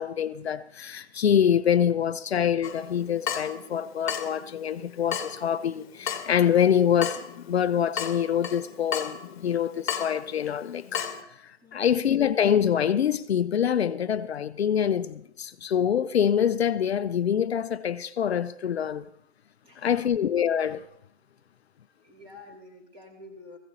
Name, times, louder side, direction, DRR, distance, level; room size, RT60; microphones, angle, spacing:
voice 1, 0.0-7.2 7.5-11.0 11.4-19.1 19.8-20.8, left 9 dB, 65° left, 0.6 m, -25 dB
Water tap faucet / Drip, 2.6-11.2, left 8 dB, 45° left, 1.3 m, -36 dB
voice 2, 11.6-12.1 19.6-20.1 22.0-23.6, left 2 dB, 15° right, 2.6 m, -49 dB
16.5 x 15.5 x 2.9 m
hypercardioid pair, 150°, 34 cm